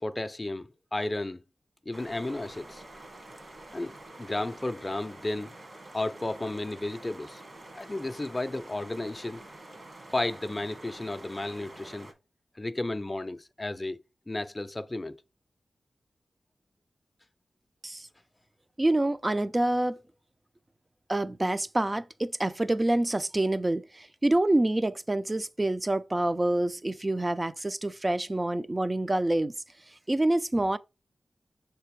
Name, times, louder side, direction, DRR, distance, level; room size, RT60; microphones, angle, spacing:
voice 1, 0.0-1.4 1.9-2.8 3.7-5.5 5.9-7.4 7.7-9.4 10.1-12.1 12.6-14.0 14.3-15.2, left 2 dB, 25° left, 0.5 m, -33 dB
sound 1, 1.9-12.1, right 2 dB, 40° right, 1.7 m, -47 dB
voice 2, 18.8-20.0 21.1-29.5 30.1-30.8, right 1 dB, 25° right, 0.5 m, -27 dB
6.6 x 3.4 x 4.6 m
wide cardioid pair, 80°, 0 cm